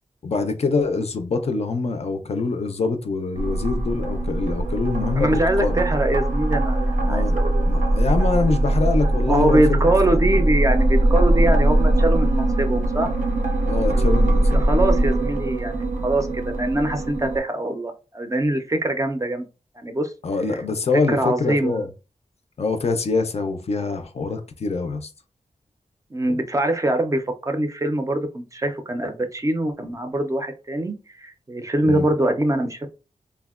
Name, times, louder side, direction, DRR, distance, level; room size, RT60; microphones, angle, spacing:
voice 1, 0.2-5.8 7.0-9.9 13.6-14.6 20.2-21.9 22.6-25.1 26.3-26.4 31.9-32.1, left 4 dB, 50° left, 0.4 m, -25 dB
sound 1, 3.4-17.4, right 1 dB, 80° right, 0.6 m, -21 dB
voice 2, 5.2-7.7 9.3-13.1 14.5-19.5 19.8-20.1 21.1-21.8 26.1-32.9, right 1 dB, 25° right, 0.4 m, -23 dB
3.4 x 2.1 x 2.3 m
wide cardioid pair, 115°, 13 cm